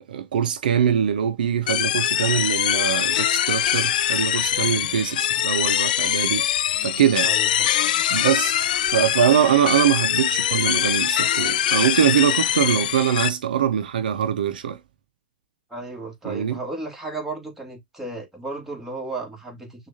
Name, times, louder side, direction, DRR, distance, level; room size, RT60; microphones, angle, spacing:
voice 1, 0.1-6.4 6.8-7.3 8.1-8.5 8.9-14.8 16.3-16.6, right 9 dB, 75° right, 0.5 m, -22 dB
sound 1, 1.7-13.3, left 11 dB, 70° left, 0.4 m, -23 dB
voice 2, 7.2-7.7 15.7-19.9, right 3 dB, 5° right, 1.8 m, -34 dB
6.0 x 2.4 x 2.7 m
hypercardioid pair, 115°, 5 cm